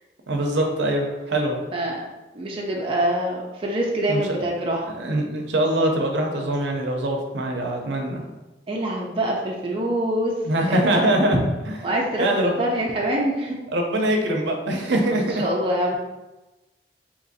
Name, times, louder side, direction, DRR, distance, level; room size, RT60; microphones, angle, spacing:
voice 1, 0.3-1.6 4.1-4.5 5.0-8.2 10.4-11.4 11.7-11.8 12.2-12.5 13.7-15.4, right 1 dB, 75° right, 2 dB, 0.6 m, -23 dB
voice 2, 2.3-4.9 8.7-10.3 10.7-11.3 11.8-13.6 15.4-16.0, right 1 dB, 30° right, -2 dB, 0.4 m, -25 dB
2.9 x 2.5 x 3.9 m, 1.1 s
head